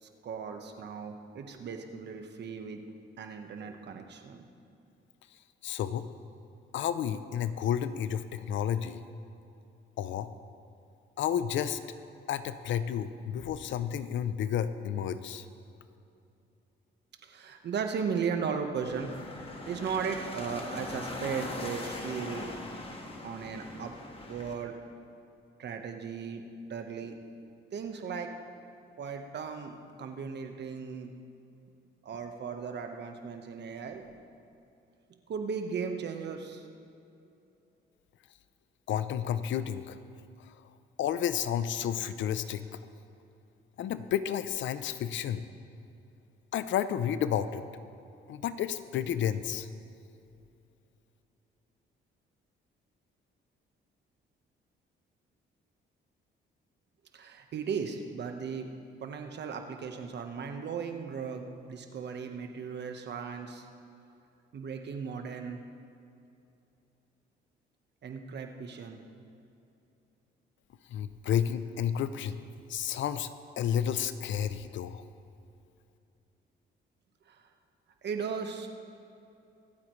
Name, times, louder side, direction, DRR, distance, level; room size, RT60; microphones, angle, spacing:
voice 1, 0.0-2.8 3.2-4.4 17.2-19.2 19.7-22.5 23.2-23.9 24.3-24.8 25.6-27.2 27.7-28.3 29.0-31.1 32.0-34.0 35.3-36.7 57.1-58.7 59.0-63.7 64.5-65.6 68.0-69.0 77.3-77.5 78.0-78.7, right 6 dB, 60° right, 5 dB, 1.3 m, -36 dB
voice 2, 5.6-6.1 6.7-9.0 10.0-10.3 11.2-11.8 12.3-15.5 38.9-40.0 40.4-40.5 41.0-42.8 43.8-45.4 46.5-47.6 48.3-49.7 70.9-72.4 72.7-73.3 73.6-75.0, left 9 dB, 75° left, 12 dB, 0.6 m, -31 dB
sound 1, 18.8-24.5, left 2 dB, 30° left, 1.7 m, -41 dB
24.5 x 8.6 x 3.2 m, 2.7 s
cardioid pair, 90°, 20 cm